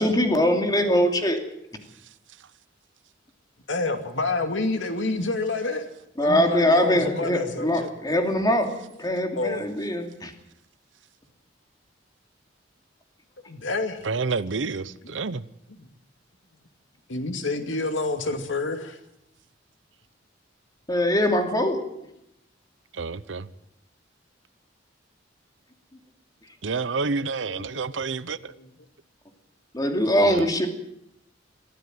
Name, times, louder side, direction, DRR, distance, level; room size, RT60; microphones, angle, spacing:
voice 1, 0.0-1.4 6.2-8.7 9.0-10.3 20.9-21.8 29.7-30.7, equal, 20° left, 2.7 m, -22 dB
voice 2, 3.7-5.8 6.2-7.9 9.4-9.7 13.5-14.1 15.0-15.2 15.8-15.9 17.1-19.0 27.2-27.8 28.5-28.7, left 3 dB, 85° left, 2.5 m, -28 dB
voice 3, 14.0-15.4 22.9-23.5 26.6-28.5 30.2-30.5, right 4 dB, 75° right, 0.8 m, -29 dB
22.5 x 15.0 x 7.8 m
head